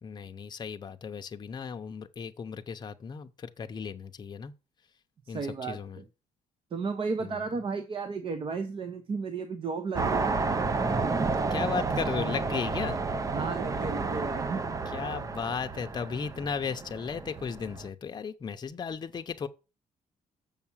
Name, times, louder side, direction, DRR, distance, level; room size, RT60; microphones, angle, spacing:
voice 1, 0.0-4.5 5.3-6.0 7.2-7.4 11.5-13.0 14.9-19.5, left 6 dB, 30° left, 0.7 m, -35 dB
voice 2, 5.3-6.0 6.7-10.3 13.3-14.8, right 4 dB, 40° right, 0.9 m, -34 dB
sound 1, 9.9-17.9, right 4 dB, 25° right, 0.5 m, -31 dB
7.2 x 5.9 x 7.2 m
cardioid pair, 155°, 14 cm